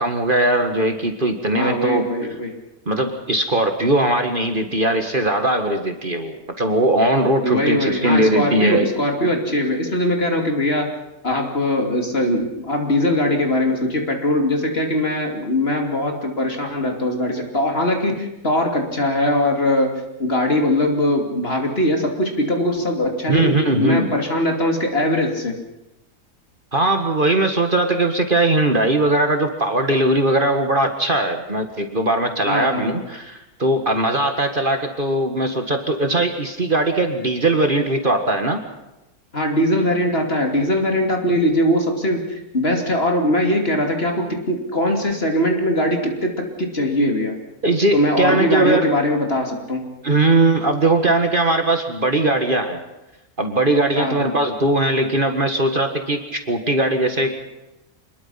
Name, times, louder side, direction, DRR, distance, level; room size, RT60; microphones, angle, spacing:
voice 1, 0.0-2.1 2.9-8.9 23.3-24.1 26.7-38.6 47.6-48.9 50.0-52.8 53.4-57.4, right 2 dB, 35° right, 5 dB, 1.9 m, -19 dB
voice 2, 1.5-2.5 7.4-10.9 11.2-25.6 32.4-33.0 39.3-47.4 47.9-49.9 54.0-54.4, left 1 dB, 40° left, 2 dB, 3.1 m, -21 dB
26.5 x 21.0 x 5.8 m, 0.95 s
omnidirectional pair, 1.6 m